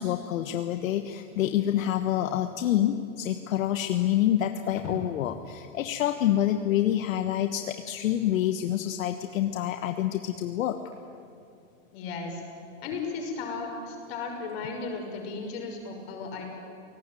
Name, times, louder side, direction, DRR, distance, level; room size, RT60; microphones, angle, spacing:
voice 1, 0.0-10.8, left 12 dB, 80° left, 7 dB, 1.4 m, -27 dB
voice 2, 11.9-12.4 12.8-16.4, left 4 dB, 50° left, 2 dB, 6.2 m, -35 dB
28.5 x 19.0 x 9.2 m, 2.5 s
supercardioid pair, 175°, 39 cm